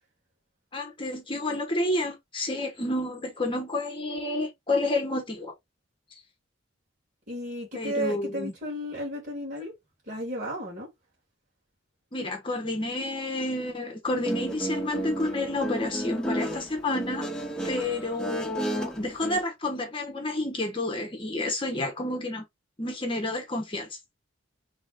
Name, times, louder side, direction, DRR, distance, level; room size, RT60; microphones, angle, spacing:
voice 1, 0.7-5.5 6.1-6.2 7.7-8.5 12.1-17.3 17.6-22.4 22.8-24.0, left 2 dB, 25° left, 1.0 m, -30 dB
voice 2, 7.3-9.7 10.1-10.9, equal, 40° right, 2.2 m, -33 dB
Guitar, 14.1-19.4, right 1 dB, 5° left, 1.2 m, -33 dB
4.0 x 3.4 x 3.6 m
head